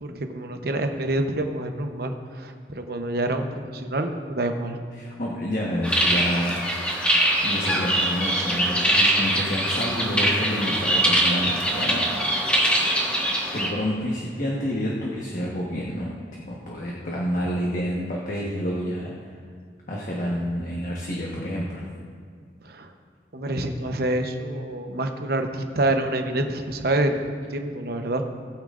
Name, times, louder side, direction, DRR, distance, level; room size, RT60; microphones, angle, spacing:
voice 1, 0.0-4.8 22.6-22.9 23.3-27.2 27.5-28.2, right 1 dB, 60° right, 5 dB, 0.9 m, -27 dB
voice 2, 5.0-6.9 7.4-12.0 13.5-16.1 16.5-19.1 19.9-21.9, equal, 50° left, -4 dB, 1.3 m, -28 dB
sound 1, 5.8-13.7, right 1 dB, 5° left, 1.4 m, -23 dB
19.0 x 8.9 x 2.6 m, 2.1 s
head